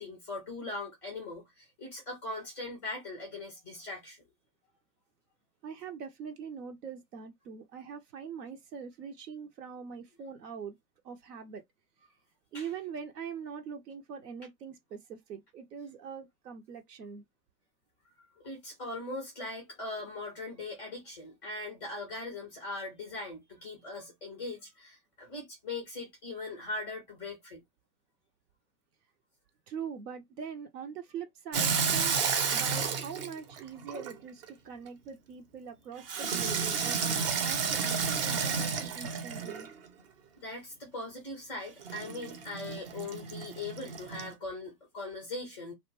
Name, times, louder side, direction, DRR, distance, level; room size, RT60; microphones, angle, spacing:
voice 1, 0.0-4.2 12.5-12.7 18.4-27.6 40.4-45.7, left 2 dB, 5° left, 0.3 m, -40 dB
voice 2, 5.6-10.7 11.0-11.6 12.5-17.2 29.7-32.2 32.5-39.7, right 6 dB, 75° right, 0.7 m, -43 dB
Water tap faucet / Sink (filling or washing), 31.5-34.5 36.1-39.8 41.8-44.3, right 6 dB, 35° right, 0.6 m, -31 dB
2.5 x 2.1 x 2.9 m
hypercardioid pair, 120°, 49 cm